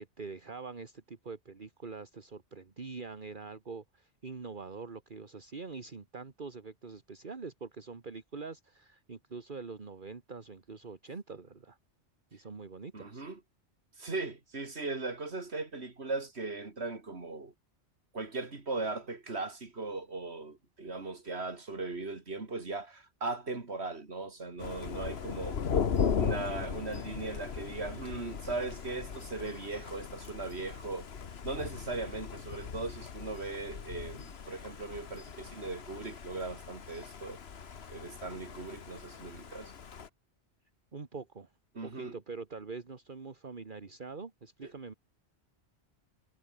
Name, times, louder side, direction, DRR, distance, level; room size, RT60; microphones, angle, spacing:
voice 1, 0.0-11.8 12.3-13.3 40.9-41.5 41.8-44.9, right 4 dB, 45° right, 1.8 m, -44 dB
voice 2, 12.9-13.4 14.0-17.5 18.1-25.6 26.1-31.1 31.4-37.4 37.9-39.7 41.7-42.2 44.6-44.7, right 3 dB, 65° right, 3.1 m, -38 dB
Thunder, 24.6-40.1, left 6 dB, 60° left, 1.4 m, -38 dB
omnidirectional pair, 1.2 m